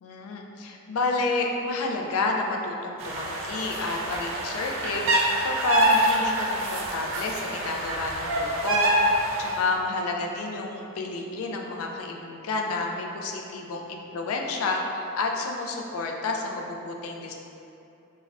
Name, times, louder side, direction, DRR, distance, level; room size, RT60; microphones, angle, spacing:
voice 1, 0.0-8.9 9.4-17.3, left 3 dB, 85° left, 1 dB, 0.3 m, -30 dB
sound 1, 3.0-9.6, right 1 dB, 65° right, 0.4 m, -26 dB
2.4 x 2.1 x 3.3 m, 2.8 s
head